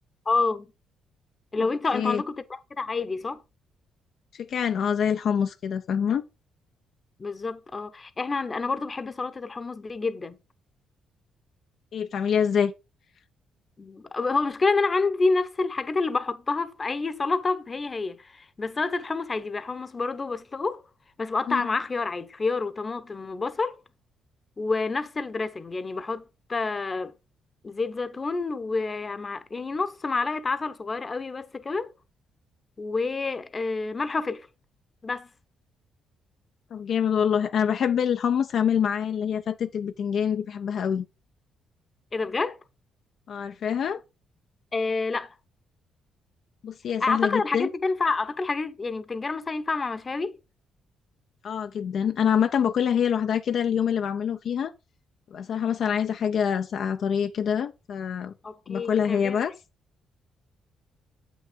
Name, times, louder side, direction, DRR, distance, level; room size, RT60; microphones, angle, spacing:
voice 1, 0.3-0.7 1.5-3.4 7.2-10.4 13.8-20.8 21.2-23.8 24.6-26.2 26.5-27.1 27.6-31.9 32.8-34.5 35.0-35.3 42.1-42.6 44.7-45.4 47.0-50.4 58.4-59.4, left 3 dB, 30° left, 0.8 m, -28 dB
voice 2, 4.3-6.2 11.9-12.7 21.5-21.7 36.7-41.1 43.3-44.0 46.6-47.7 51.4-54.7 55.3-58.3 58.7-59.6, left 8 dB, 65° left, 0.5 m, -25 dB
8.0 x 6.2 x 3.8 m
cardioid pair, 90°, 0 cm